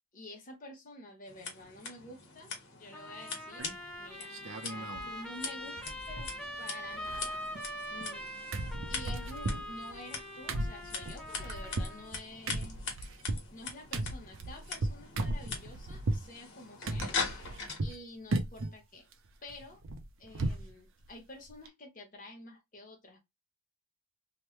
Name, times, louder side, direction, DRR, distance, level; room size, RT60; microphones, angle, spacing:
voice 1, 0.1-3.7 4.0-6.3 6.6-7.4 7.9-8.3 8.9-12.8 13.5-17.2 17.8-19.1 19.4-19.8 20.2-23.2, left 2 dB, 35° left, 1.0 m, -49 dB
Scissors, 1.3-17.8, left 4 dB, 55° left, 1.2 m, -43 dB
Trumpet, 2.9-12.1, equal, 5° left, 0.8 m, -43 dB
sound 1, 3.6-3.9 4.3-5.1 5.4-5.5 5.8-6.6 6.9-8.2 8.5-16.3 16.9-18.0 18.3-18.8 19.1-20.7 21.0-21.1 21.5-21.7, right 2 dB, 60° right, 0.5 m, -36 dB
3.0 x 2.2 x 3.1 m
head